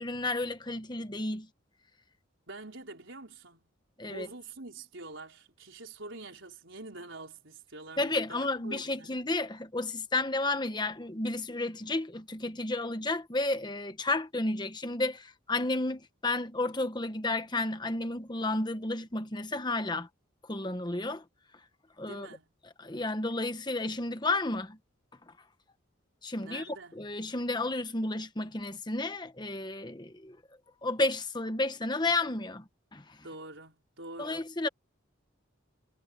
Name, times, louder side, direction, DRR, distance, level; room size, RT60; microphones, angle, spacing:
voice 1, 0.0-1.5 4.0-4.3 8.0-20.1 20.5-21.2 22.0-22.3 22.8-24.8 26.2-26.6 26.9-30.4 30.8-32.6 32.9-33.0 34.2-34.7, left 2 dB, 20° left, 1.2 m, -32 dB
voice 2, 2.5-3.7 4.1-9.2 22.1-22.5 26.4-27.0 33.2-34.5, right 2 dB, 70° right, 4.4 m, -46 dB
head